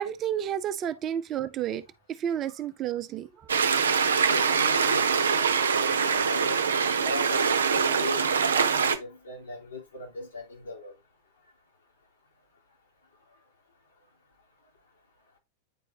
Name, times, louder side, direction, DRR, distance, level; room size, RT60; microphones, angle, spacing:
voice 1, 0.0-3.6, right 10 dB, 30° right, 0.5 m, -31 dB
sound 1, 3.5-9.0, right 6 dB, 70° right, 0.7 m, -24 dB
voice 2, 4.3-6.6 6.9-11.0 13.3-13.4, left 2 dB, 70° left, 3.1 m, -39 dB
9.3 x 4.5 x 2.8 m
figure-of-eight pair, 90°, 0 cm